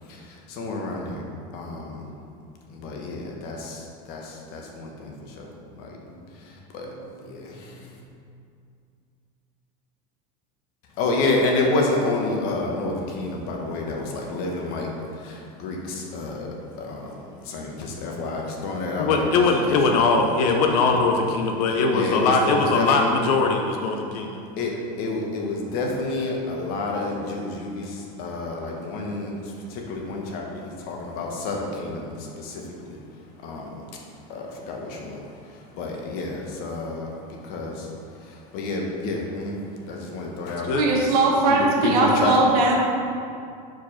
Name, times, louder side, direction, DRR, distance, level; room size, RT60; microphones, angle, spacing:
voice 1, 0.0-2.1 2.7-8.0 11.0-20.3 20.8-21.1 21.9-23.2 24.4-41.1 41.5-42.4, left 2 dB, 50° left, 0 dB, 1.1 m, -30 dB
voice 2, 19.0-24.4 40.7-40.9, left 4 dB, 85° left, 3 dB, 0.7 m, -21 dB
voice 3, 40.7-42.7, right 2 dB, 85° right, -2 dB, 1.2 m, -19 dB
4.8 x 4.7 x 5.7 m, 2.4 s
cardioid pair, 165°, 19 cm